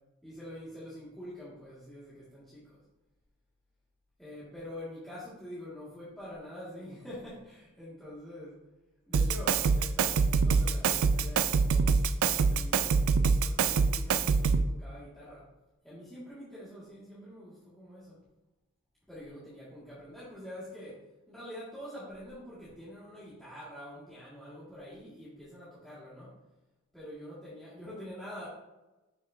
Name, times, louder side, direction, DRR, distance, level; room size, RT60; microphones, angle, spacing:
voice 1, 0.2-2.8 4.2-8.6 9.1-12.0 12.3-13.0 13.4-15.5 15.8-18.2 19.1-26.4 26.9-28.5, equal, ahead, -11 dB, 2.0 m, -46 dB
Drum kit, 9.1-14.7, right 5 dB, 90° right, 0.4 m, -25 dB
7.3 x 6.7 x 2.7 m, 1.1 s
head